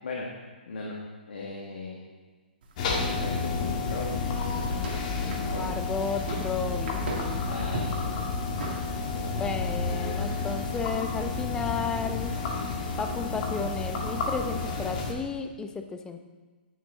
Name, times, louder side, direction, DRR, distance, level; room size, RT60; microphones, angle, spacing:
voice 1, 0.6-1.0 1.3-2.0 3.2-5.9 7.5-8.1 9.1-9.5, left 3 dB, 75° left, -3 dB, 1.7 m, -38 dB
sound 1, 2.6-11.5, right 3 dB, 60° right, 2.0 m, -40 dB
sound 2, 2.8-15.1, left 4 dB, 45° left, 1.6 m, -31 dB
voice 2, 5.5-7.4 9.3-12.3 13.0-16.2, left 5 dB, 10° left, 7 dB, 0.6 m, -33 dB
9.2 x 9.1 x 3.6 m, 1.3 s
hypercardioid pair, 140°, 6 cm